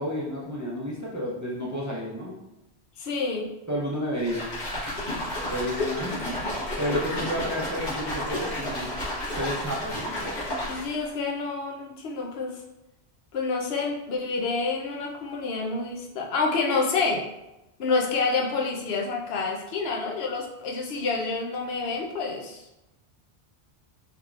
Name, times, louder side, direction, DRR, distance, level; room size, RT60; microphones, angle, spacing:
voice 1, 0.0-2.4 3.7-4.4 5.5-6.4 6.8-8.9 9.3-10.4, equal, 25° right, -5 dB, 0.5 m, -31 dB
voice 2, 3.0-3.5 10.7-12.6 13.3-17.2 17.8-22.6, left 4 dB, 70° left, 0 dB, 0.8 m, -28 dB
sound 1, 4.2-11.1, left 1 dB, 45° left, 1.2 m, -31 dB
3.6 x 2.9 x 2.4 m, 0.95 s
omnidirectional pair, 1.1 m